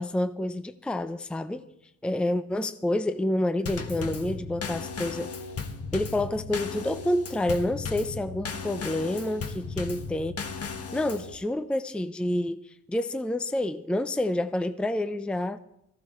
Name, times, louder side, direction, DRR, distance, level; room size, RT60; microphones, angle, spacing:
voice 1, 0.0-1.7 2.0-5.3 5.9-10.3 10.9-15.6, left 1 dB, 5° left, 0.5 m, -28 dB
Drum kit / Snare drum / Bass drum, 3.7-11.3, left 5 dB, 55° left, 1.6 m, -36 dB
18.5 x 14.5 x 3.1 m
cardioid pair, 90°, 30 cm